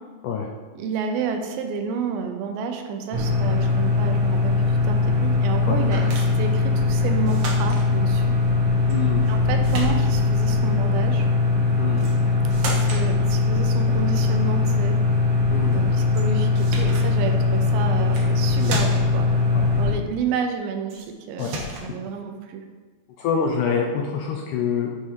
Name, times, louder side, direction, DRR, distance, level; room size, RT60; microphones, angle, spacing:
voice 1, 0.7-8.3 9.3-11.3 12.7-15.0 15.7-19.3 19.8-22.6, right 5 dB, 85° right, 4 dB, 2.5 m, -30 dB
sound 1, 3.1-19.9, left 3 dB, 40° right, 1.6 m, -21 dB
sound 2, 6.1-6.4 7.2-7.9 8.9-9.4 9.6-10.3 12.0-12.2 12.5-13.1 16.1-16.2 16.5-17.1 18.0-18.3 18.6-19.2 20.9-21.1 21.4-21.9, right 2 dB, 60° right, 1.6 m, -33 dB
voice 2, 8.9-9.3 11.8-12.1 15.5-15.8 18.6-18.8 19.5-19.7 21.4-21.7 23.2-24.9, left 6 dB, 80° left, 0 dB, 1.9 m, -26 dB
9.5 x 3.5 x 4.6 m, 1.4 s
omnidirectional pair, 4.2 m